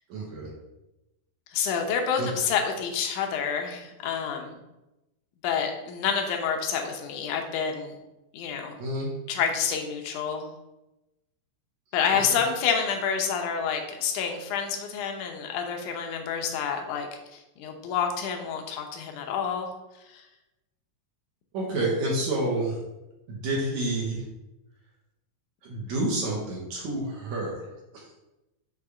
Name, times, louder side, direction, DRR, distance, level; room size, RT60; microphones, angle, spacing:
voice 1, 0.1-0.5 2.2-2.5 8.8-9.2 21.5-22.8 23.3-24.2 25.6-27.7 27.9-28.1, right 1 dB, 65° right, -3 dB, 2.2 m, -29 dB
voice 2, 1.5-4.6 5.4-8.0 8.3-8.8 9.3-10.5 11.9-19.7 20.1-20.3, left 7 dB, 75° left, 3 dB, 2.2 m, -28 dB
6.7 x 3.3 x 4.9 m, 0.97 s
omnidirectional pair, 3.8 m